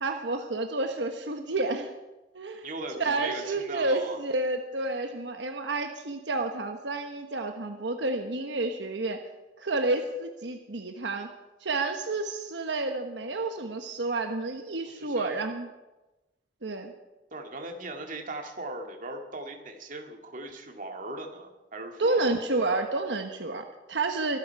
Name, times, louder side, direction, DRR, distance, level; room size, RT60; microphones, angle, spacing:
voice 1, 0.0-1.9 2.3-9.2 9.6-11.3 11.6-15.7 16.6-16.9 22.0-24.4, right 2 dB, 85° right, 5 dB, 1.2 m, -30 dB
voice 2, 2.6-4.2 15.0-15.4 17.3-22.4, right 2 dB, 50° right, 3 dB, 2.3 m, -38 dB
23.5 x 12.0 x 4.7 m, 1.0 s
head